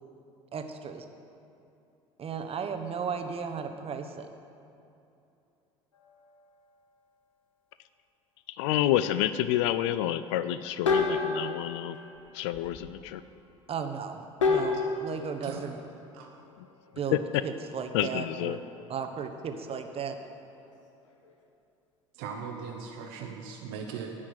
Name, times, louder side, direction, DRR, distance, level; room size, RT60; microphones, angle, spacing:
voice 1, 0.5-1.0 2.2-4.3 13.7-15.8 17.0-18.6 18.9-20.2, right 6 dB, 40° right, 7 dB, 1.0 m, -35 dB
sound 1, 5.9-6.9 10.8-13.0 14.4-17.8 18.2-18.4 19.2-20.7 21.0-21.4, left 4 dB, 85° left, 1.1 m, -33 dB
voice 2, 8.5-12.0 12.3-13.2 17.1-17.2 17.9-18.6, left 13 dB, 70° left, 13 dB, 0.4 m, -28 dB
voice 3, 22.1-24.2, right 6 dB, 65° right, 2 dB, 0.9 m, -39 dB
10.0 x 6.3 x 7.8 m, 2.7 s
hypercardioid pair, 65°, 16 cm